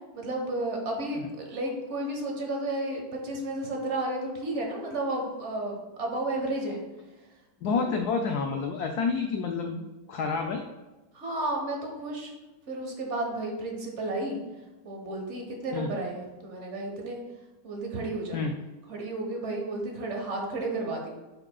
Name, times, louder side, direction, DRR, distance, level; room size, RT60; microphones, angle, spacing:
voice 1, 0.1-6.8 7.6-7.9 11.1-12.3 12.7-14.4 14.8-17.2 17.6-18.4 18.9-21.1, right 2 dB, 40° right, 1 dB, 1.2 m, -32 dB
voice 2, 7.6-9.8 10.1-10.7 15.7-15.9 18.3-18.6, left 5 dB, 85° left, 4 dB, 0.8 m, -29 dB
9.6 x 4.9 x 2.3 m, 1.1 s
omnidirectional pair, 2.2 m